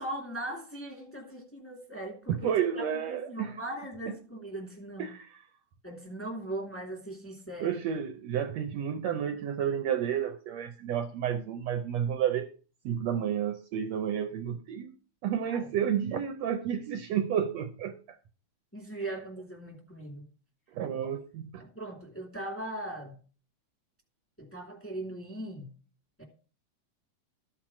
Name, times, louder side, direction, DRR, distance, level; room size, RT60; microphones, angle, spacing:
voice 1, 0.0-5.1 5.8-7.8 15.5-15.7 18.7-20.3 21.6-23.2 24.4-25.7 26.2-26.3, right 1 dB, 5° left, 2.0 m, -39 dB
voice 2, 2.3-3.5 5.0-5.3 7.6-12.5 12.8-14.9 15.2-18.0 20.7-21.6, right 9 dB, 75° right, 1.7 m, -31 dB
13.0 x 4.6 x 6.1 m
omnidirectional pair, 3.4 m